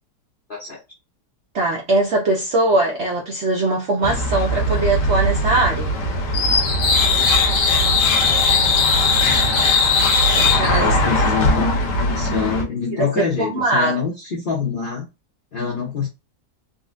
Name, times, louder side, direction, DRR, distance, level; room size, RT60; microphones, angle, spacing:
voice 1, 0.5-0.8 10.7-11.7 12.1-15.1 15.5-16.1, left 5 dB, 55° left, 0.6 m, -25 dB
voice 2, 1.5-5.9 10.3-10.9 12.9-14.0, right 2 dB, 65° right, 0.7 m, -21 dB
sound 1, 4.0-12.6, left 2 dB, 80° left, 1.3 m, -18 dB
3.9 x 2.1 x 2.4 m
omnidirectional pair, 1.8 m